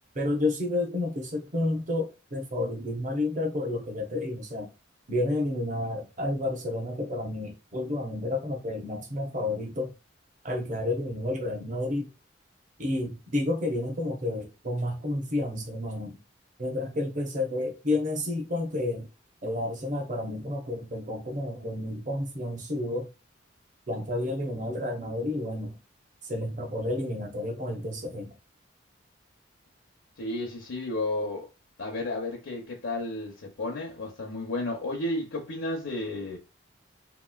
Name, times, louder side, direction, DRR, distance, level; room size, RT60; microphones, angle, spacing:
voice 1, 0.1-4.7 5.1-9.9 10.4-12.1 12.8-16.2 16.6-19.1 19.4-23.1 23.9-25.8 26.2-28.3, left 2 dB, 40° right, 0.7 m, -30 dB
voice 2, 30.2-31.5 31.8-36.4, left 2 dB, 75° left, 0.7 m, -32 dB
2.9 x 2.7 x 2.3 m
head